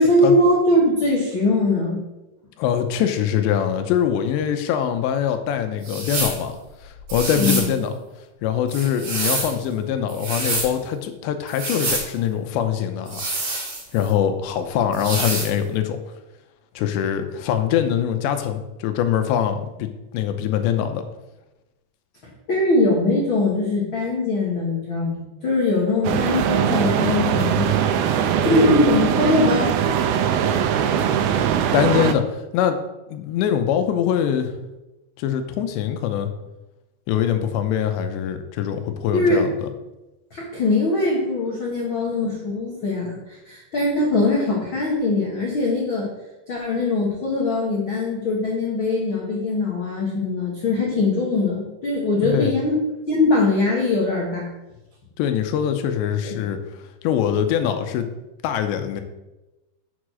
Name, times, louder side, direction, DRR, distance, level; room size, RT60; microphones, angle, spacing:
voice 1, 0.0-2.0 7.3-7.7 22.5-27.7 28.4-29.7 39.1-39.4 40.3-46.1 46.5-52.8 53.1-54.5 56.2-56.3, left 2 dB, 70° left, -3 dB, 1.2 m, -21 dB
voice 2, 2.6-7.9 8.4-13.5 13.9-16.0 16.8-21.0 31.4-32.8 33.1-34.6 35.2-36.3 37.1-39.7 52.2-52.5 55.2-56.6 57.0-58.1 58.4-59.0, left 9 dB, 85° left, 7 dB, 3.1 m, -23 dB
sound 1, 5.8-6.4 7.1-7.7 8.7-9.6 10.1-10.7 11.5-12.1 13.1-14.1 14.9-15.5, right 2 dB, 45° right, 3.6 m, -27 dB
sound 2, 26.0-32.1, right 8 dB, 80° right, 2.3 m, -21 dB
7.3 x 6.6 x 6.2 m, 1.0 s
omnidirectional pair, 5.0 m